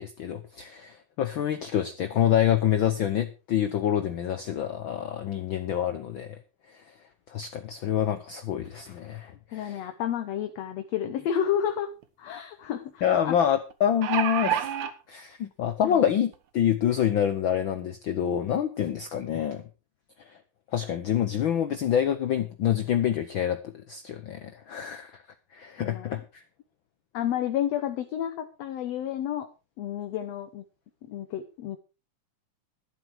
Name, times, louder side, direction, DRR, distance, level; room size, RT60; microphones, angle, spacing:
voice 1, 0.0-6.4 7.3-9.8 13.0-14.7 15.1-19.6 20.7-25.1 25.5-26.4, left 9 dB, 80° left, 10 dB, 1.1 m, -27 dB
voice 2, 9.5-11.9 12.2-13.4 15.8-16.0 25.8-26.2 27.1-29.5 29.8-30.6 31.1-31.8, left 10 dB, 65° left, 8 dB, 2.0 m, -31 dB
sound 1, 11.6-11.7 12.0-12.1 13.7-14.9 15.8-15.9 16.3-16.4, right 10 dB, 75° right, 2.6 m, -28 dB
12.5 x 11.5 x 4.6 m, 0.30 s
omnidirectional pair, 3.5 m